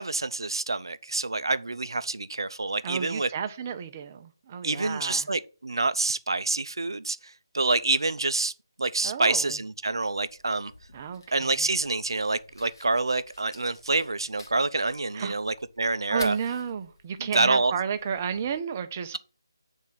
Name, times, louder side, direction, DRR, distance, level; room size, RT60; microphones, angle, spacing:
voice 1, 0.0-3.3 4.6-7.2 7.5-8.5 8.8-10.7 11.3-16.4 17.2-17.7, right 3 dB, 70° right, 0.5 m, -27 dB
voice 2, 2.8-5.3 9.0-9.6 10.9-11.7 15.1-15.3 16.1-19.2, right 7 dB, 30° right, 0.6 m, -32 dB
Fire, 9.8-18.6, left 2 dB, 55° left, 1.6 m, -50 dB
8.3 x 3.6 x 5.8 m
figure-of-eight pair, 155°, 2 cm